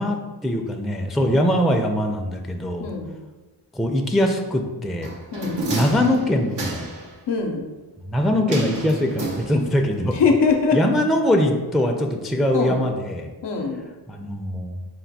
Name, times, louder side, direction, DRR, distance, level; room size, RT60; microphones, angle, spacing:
voice 1, 0.0-2.9 3.7-5.1 5.7-6.8 8.1-10.1 10.7-13.3 14.1-14.8, left 1 dB, ahead, 3 dB, 0.4 m, -22 dB
voice 2, 2.8-3.1 5.3-5.7 7.3-7.7 10.1-10.9 12.5-12.9 13.4-13.8, left 4 dB, 90° left, 2 dB, 0.6 m, -22 dB
sound 1, 5.0-7.1 8.5-9.9 10.2-10.3, right 2 dB, 90° right, 0.8 m, -30 dB
4.4 x 2.2 x 4.0 m, 1.2 s
cardioid pair, 40°, 41 cm